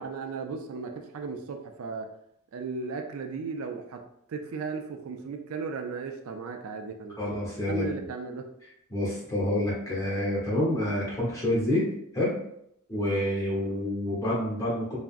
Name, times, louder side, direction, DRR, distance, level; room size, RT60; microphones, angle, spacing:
voice 1, 0.0-2.1 2.5-4.0 4.3-7.2 7.6-8.4, right 4 dB, 75° right, 4 dB, 0.4 m, -35 dB
voice 2, 7.2-7.9 8.9-11.9 12.1-12.3 12.9-15.0, left 1 dB, 15° left, -6 dB, 1.0 m, -28 dB
3.5 x 2.0 x 2.4 m, 0.75 s
head